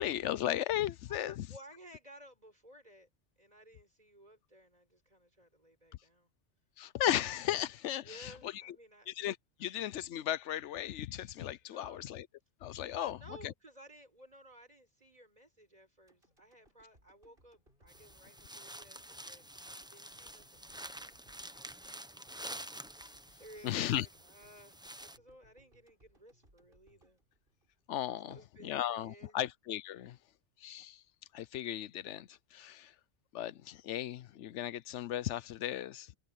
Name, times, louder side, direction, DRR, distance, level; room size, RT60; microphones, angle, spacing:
voice 1, 0.0-1.3 6.8-8.5 9.1-12.3 12.6-13.2 13.4-13.5 23.6-24.1 27.9-28.3 28.6-30.2 30.6-31.0 31.3-32.9 33.3-36.1, left 12 dB, 85° left, 0.9 m, -36 dB
voice 2, 1.1-3.1 3.4-6.3 8.0-9.1 9.6-9.7 11.6-12.1 13.0-19.5 19.9-22.3 23.0-27.2 28.2-29.4, right 1 dB, 35° right, 5.4 m, -57 dB
sound 1, 16.1-28.3 28.7-28.8, right 1 dB, 50° right, 8.3 m, -68 dB
sound 2, 17.9-25.2, right 1 dB, 5° right, 0.5 m, -48 dB
omnidirectional pair, 1.2 m